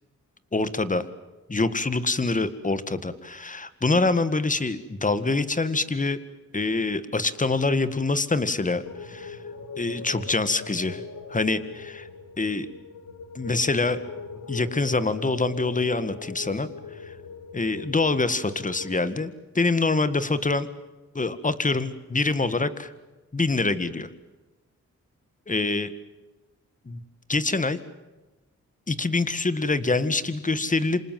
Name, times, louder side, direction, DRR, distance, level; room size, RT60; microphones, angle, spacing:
voice 1, 0.5-1.0 1.5-6.2 6.5-9.4 9.8-11.0 11.3-12.1 12.4-12.7 13.4-14.0 14.5-16.7 17.0-17.1 17.5-20.7 21.2-22.9 23.3-24.1 25.5-25.9 26.9-27.0 27.3-27.8 28.9-31.0, left 3 dB, 25° left, 13 dB, 1.8 m, -25 dB
sound 1, 8.9-19.0, left 4 dB, 85° left, 2.9 m, -40 dB
28.0 x 26.0 x 7.7 m, 1.1 s
cardioid pair, 90°, 29 cm